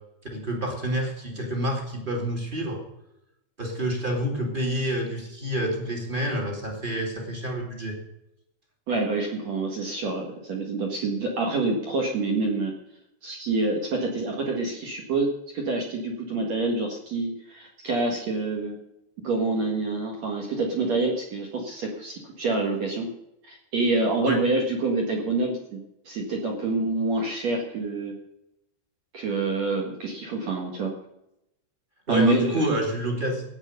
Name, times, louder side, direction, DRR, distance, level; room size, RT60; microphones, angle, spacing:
voice 1, 0.3-2.8 3.6-8.0 24.2-24.4 32.1-33.4, equal, 20° right, 0 dB, 1.4 m, -28 dB
voice 2, 8.9-12.7 13.2-18.8 19.2-23.1 23.4-28.1 29.1-30.9 32.1-32.8, right 3 dB, 55° right, 0 dB, 2.0 m, -27 dB
14.0 x 9.6 x 6.7 m, 0.85 s
omnidirectional pair, 5.7 m